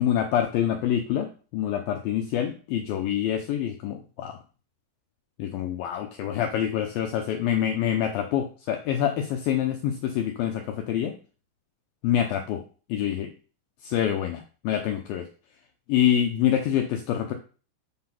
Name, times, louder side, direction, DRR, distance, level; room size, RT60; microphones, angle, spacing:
voice 1, 0.0-4.4 5.4-11.2 12.0-12.6 12.9-13.3 13.8-15.3 15.9-17.3, left 10 dB, 90° left, 4 dB, 2.0 m, -26 dB
8.5 x 3.8 x 5.9 m, 0.37 s
omnidirectional pair, 5.1 m